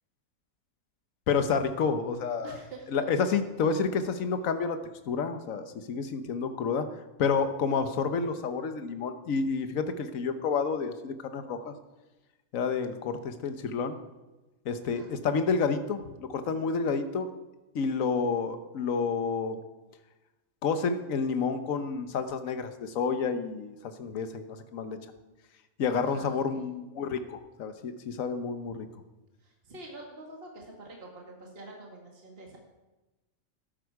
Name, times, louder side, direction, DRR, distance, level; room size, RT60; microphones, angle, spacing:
voice 1, 1.3-2.6 2.9-4.8 5.1-6.8 7.2-11.7 12.5-14.0 14.6-17.3 17.7-19.6 20.6-25.0 25.8-28.9, left 5 dB, 70° left, 9 dB, 1.4 m, -29 dB
voice 2, 2.4-2.9 14.9-15.1 26.0-26.7 29.4-32.6, right 2 dB, 45° right, 0 dB, 2.2 m, -46 dB
13.0 x 11.5 x 4.7 m, 1.1 s
omnidirectional pair, 1.5 m